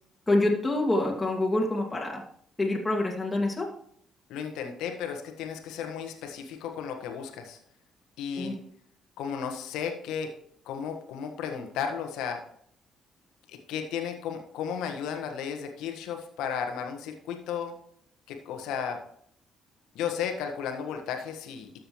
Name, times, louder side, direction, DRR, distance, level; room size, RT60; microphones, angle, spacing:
voice 1, 0.3-2.2 2.6-3.7 8.4-8.5, left 2 dB, 20° left, -1 dB, 2.2 m, -26 dB
voice 2, 4.3-7.6 8.2-8.5 9.2-10.3 10.6-12.4 13.5-17.7 18.3-19.0 19.9-21.8, left 7 dB, 75° left, 4 dB, 1.4 m, -34 dB
13.0 x 6.7 x 3.1 m, 0.65 s
hypercardioid pair, 50°, 0 cm